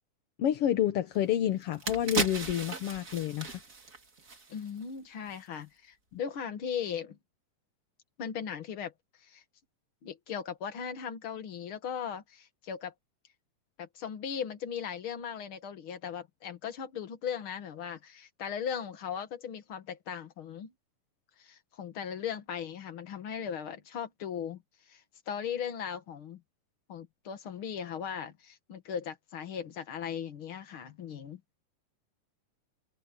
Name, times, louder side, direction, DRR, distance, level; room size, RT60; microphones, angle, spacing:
voice 1, 0.4-3.6, left 11 dB, 65° left, 1.6 m, -29 dB
sound 1, 1.1-1.2 1.6-4.9 5.2-5.4, right 3 dB, 30° right, 2.2 m, -36 dB
voice 2, 4.5-7.2 8.2-8.9 9.2-9.4 10.0-12.9 13.8-20.7 21.4-24.6 24.9-26.4 26.9-31.4, left 8 dB, 45° left, 2.1 m, -38 dB
omnidirectional pair, 3.7 m